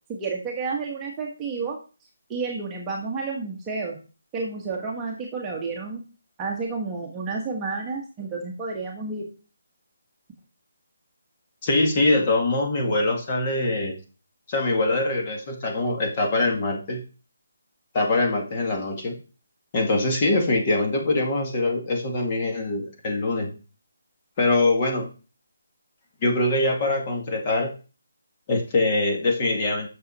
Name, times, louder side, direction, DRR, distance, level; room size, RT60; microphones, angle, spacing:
voice 1, 0.1-1.8 2.3-4.0 4.3-6.0 6.4-9.3, right 4 dB, 10° right, -2 dB, 1.4 m, -30 dB
voice 2, 11.6-14.0 14.5-17.0 17.9-19.2 19.7-23.5 24.4-25.1 26.2-27.7 28.5-29.9, left 2 dB, 25° left, 2 dB, 1.9 m, -23 dB
8.7 x 6.6 x 4.2 m, 0.34 s
hypercardioid pair, 170°, 0 cm